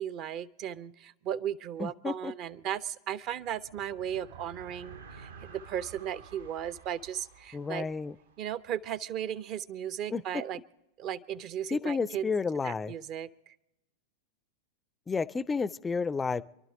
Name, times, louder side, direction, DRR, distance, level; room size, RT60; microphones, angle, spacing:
voice 1, 0.0-7.9 8.4-10.6 11.0-12.3 12.6-13.5, right 10 dB, 35° right, 0.6 m, -36 dB
voice 2, 1.8-2.3 7.5-8.2 10.1-10.2 11.7-12.9 15.1-16.4, left 4 dB, 15° left, 0.4 m, -31 dB
sound 1, 3.2-8.9, right 5 dB, 65° right, 1.1 m, -51 dB
28.0 x 11.5 x 3.7 m
figure-of-eight pair, 90°, 0 cm